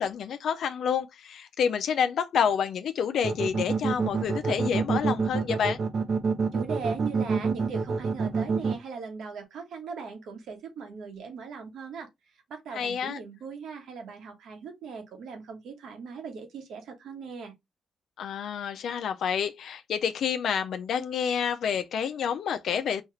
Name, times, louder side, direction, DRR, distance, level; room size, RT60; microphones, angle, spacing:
voice 1, 0.0-5.8 12.7-13.2 18.2-23.0, left 7 dB, 70° left, 0.3 m, -28 dB
sound 1, 3.2-8.7, right 5 dB, 50° right, 0.7 m, -26 dB
voice 2, 6.5-12.1 12.5-17.5, right 5 dB, 80° right, 1.2 m, -39 dB
4.3 x 2.4 x 3.0 m
cardioid pair, 95°, 0 cm